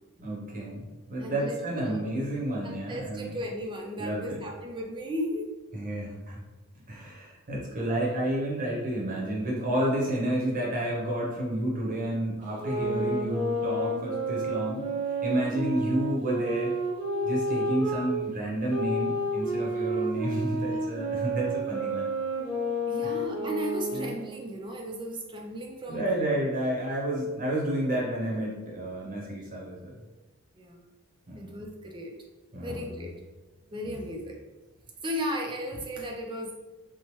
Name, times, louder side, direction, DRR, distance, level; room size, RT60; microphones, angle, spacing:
voice 1, 0.2-3.4 4.0-4.4 5.7-6.4 6.9-14.8 15.2-16.8 17.2-22.1 23.0-23.1 23.9-24.1 25.9-30.0 31.3-31.6 32.5-33.1 33.8-34.1, right 1 dB, 40° right, -3 dB, 0.7 m, -30 dB
voice 2, 1.2-2.0 2.6-5.5 22.9-26.1 30.5-30.8 31.3-32.1 32.6-33.1 33.7-34.4 35.0-36.5, equal, 20° right, 2 dB, 0.4 m, -35 dB
sound 1, 12.5-18.1 18.7-24.3, right 1 dB, 5° left, 1.0 m, -30 dB
2.9 x 2.0 x 3.0 m, 1.1 s
head